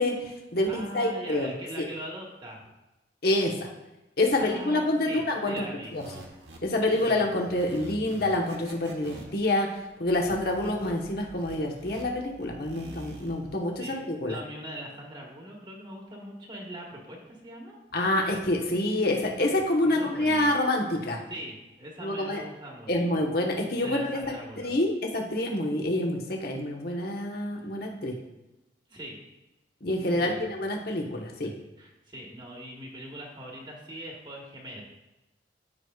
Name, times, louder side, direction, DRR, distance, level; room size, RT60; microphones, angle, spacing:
voice 1, 0.0-1.5 1.8-1.9 3.2-3.7 4.2-5.7 5.9-6.0 6.6-9.7 10.0-14.4 17.9-21.2 22.0-22.4 22.9-24.2 24.6-28.1 29.8-31.5, left 1 dB, 60° left, 1 dB, 1.2 m, -27 dB
voice 2, 0.7-2.7 4.4-5.9 13.8-17.7 19.8-20.5 21.3-23.2 23.8-24.7 28.9-29.2 30.0-30.5 31.8-34.8, right 1 dB, 25° right, -1 dB, 1.3 m, -41 dB
sound 1, 5.9-13.5, right 1 dB, 75° right, 1.2 m, -46 dB
14.0 x 4.8 x 2.4 m, 1.0 s
head